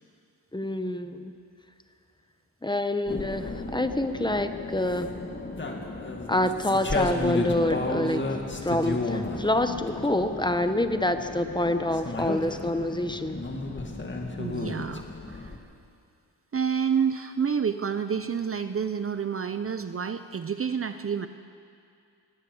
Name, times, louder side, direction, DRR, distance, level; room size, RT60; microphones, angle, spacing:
voice 1, 0.5-1.3 2.6-5.1 6.3-8.3 8.6-13.4, left 1 dB, 10° left, 8 dB, 1.0 m, -27 dB
sound 1, 3.1-15.6, left 2 dB, 25° left, 2.2 m, -33 dB
voice 2, 14.4-15.6 16.5-21.3, right 7 dB, 35° right, 10 dB, 0.7 m, -29 dB
19.0 x 18.0 x 7.9 m, 2.4 s
cardioid pair, 110°, 41 cm